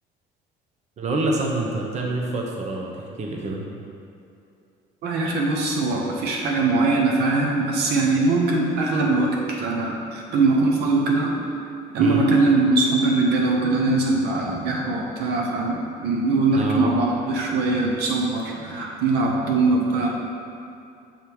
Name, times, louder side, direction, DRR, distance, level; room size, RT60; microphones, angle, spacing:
voice 1, 1.0-2.9 3.2-3.6 12.0-12.2 16.5-16.9, right 2 dB, 40° right, 0 dB, 0.9 m, -26 dB
voice 2, 5.0-11.5 11.9-20.1, right 3 dB, 75° right, -1 dB, 0.9 m, -21 dB
7.3 x 3.4 x 4.6 m, 2.6 s
cardioid pair, 110°, 17 cm